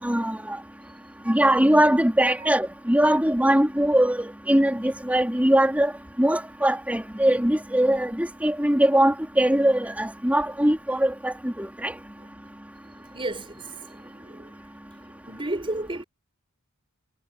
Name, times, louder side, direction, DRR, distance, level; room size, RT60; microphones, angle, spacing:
voice 1, 0.0-0.6 1.3-5.9 6.2-11.9, right 1 dB, 5° right, 3.7 m, -21 dB
voice 2, 12.8-14.6 15.0-16.0, right 2 dB, 25° right, 4.8 m, -34 dB
head